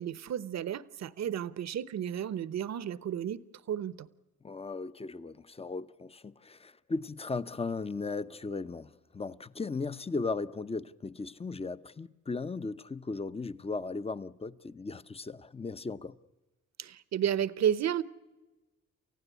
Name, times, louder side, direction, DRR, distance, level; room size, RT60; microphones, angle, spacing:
voice 1, 0.0-3.4 3.7-4.1 16.8-18.0, right 9 dB, 55° right, 1.0 m, -32 dB
voice 2, 4.4-16.2, left 3 dB, 20° left, 0.8 m, -37 dB
29.0 x 15.5 x 8.2 m
cardioid pair, 75°, 31 cm